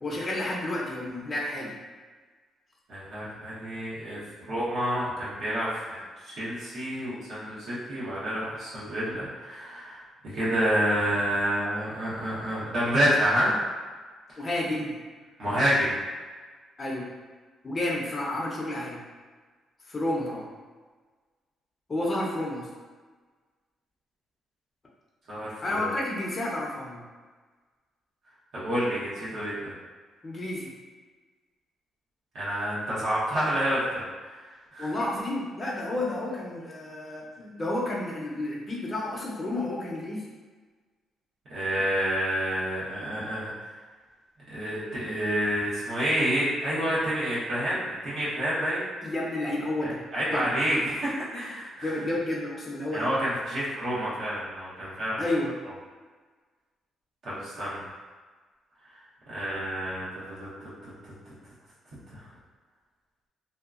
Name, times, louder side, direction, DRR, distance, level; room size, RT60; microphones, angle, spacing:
voice 1, 0.0-1.7 14.4-15.0 16.8-17.1 17.6-19.0 19.9-20.5 21.9-22.7 25.6-27.0 30.2-30.7 34.8-40.2 49.0-50.0 50.3-50.5 51.3-51.4 51.8-53.1 55.2-55.6, left 1 dB, 30° left, -3 dB, 0.6 m, -31 dB
voice 2, 2.9-6.0 6.2-13.6 14.3-14.4 15.4-16.0 25.3-25.9 28.5-29.7 32.3-34.4 34.7-35.0 41.5-43.7 44.5-48.9 49.8-52.1 52.9-55.2 57.2-57.9 59.3-60.5 60.8-60.9 62.1-62.3, equal, 65° right, -9 dB, 1.0 m, -29 dB
2.7 x 2.3 x 2.4 m, 1.4 s
cardioid pair, 90°, 0 cm